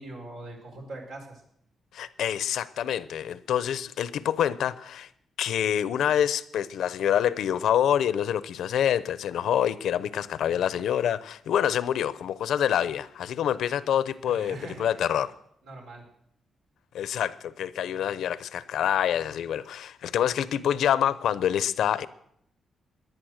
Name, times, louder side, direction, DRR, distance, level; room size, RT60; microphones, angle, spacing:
voice 1, 0.0-1.4 14.2-15.1 15.6-16.0, right 2 dB, 85° right, 1 dB, 4.9 m, -42 dB
voice 2, 1.9-5.1 5.4-15.3 16.9-22.1, left 10 dB, 85° left, 16 dB, 0.7 m, -26 dB
18.0 x 11.0 x 6.5 m, 0.73 s
cardioid pair, 135°, 0 cm